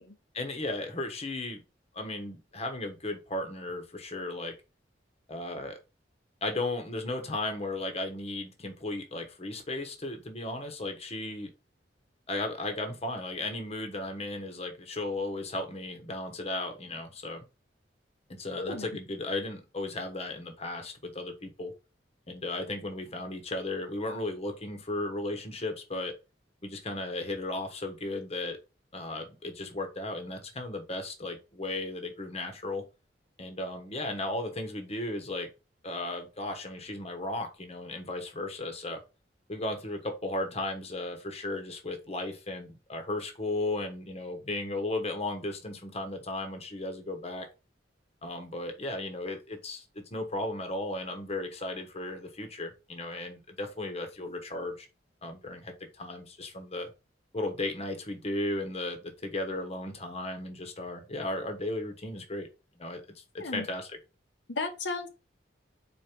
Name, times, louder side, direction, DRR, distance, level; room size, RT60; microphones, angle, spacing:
voice 1, 0.3-1.6 1.9-4.5 5.3-5.8 6.4-11.5 12.3-17.4 18.3-21.7 22.3-26.1 26.6-28.6 28.9-32.8 33.4-35.5 35.8-39.0 39.5-47.5 48.2-54.9 55.2-56.9 57.3-62.5 62.8-64.0, left 2 dB, 35° left, 1.2 m, -35 dB
voice 2, 18.6-18.9 63.4-63.7 64.5-65.1, left 3 dB, 85° left, 1.0 m, -34 dB
4.5 x 4.4 x 5.1 m
head